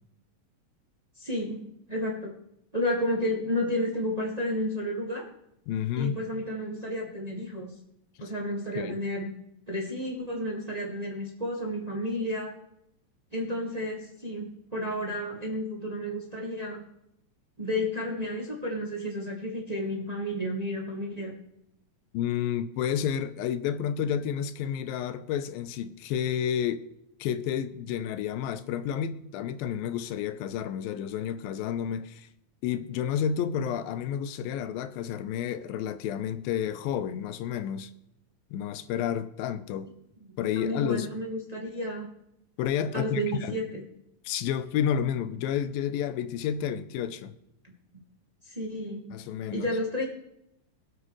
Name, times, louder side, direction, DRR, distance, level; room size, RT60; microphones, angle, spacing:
voice 1, 1.2-2.3 2.7-5.3 6.0-7.7 8.2-9.3 9.7-12.5 13.3-16.8 17.6-21.3 40.5-42.1 42.9-43.8 47.6-48.0 48.4-49.2 49.5-50.0, equal, 25° right, 0.8 m, -32 dB
voice 2, 5.7-6.1 8.8-9.0 22.1-26.8 27.2-32.3 32.6-37.9 38.5-39.9 40.4-41.1 42.6-43.6 44.3-47.3 49.1-49.7, left 9 dB, 85° left, 2.5 m, -30 dB
21.0 x 8.5 x 3.2 m
omnidirectional pair, 4.0 m